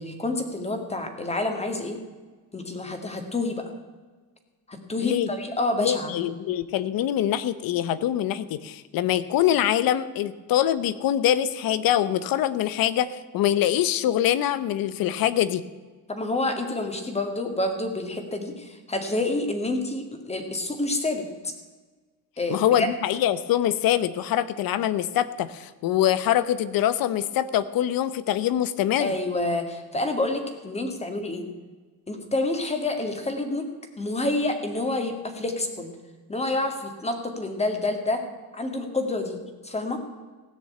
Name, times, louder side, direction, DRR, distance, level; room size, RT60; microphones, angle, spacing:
voice 1, 0.0-2.0 2.5-3.6 4.7-6.1 16.1-21.5 22.4-22.9 29.0-31.5 32.1-33.7 34.0-35.9 36.3-38.2 38.5-39.4 39.6-40.0, left 2 dB, 15° left, 5 dB, 1.9 m, -28 dB
voice 2, 5.8-15.6 22.5-29.1, left 11 dB, 70° left, 16 dB, 0.9 m, -24 dB
16.5 x 6.6 x 8.6 m, 1.4 s
cardioid pair, 130°, 37 cm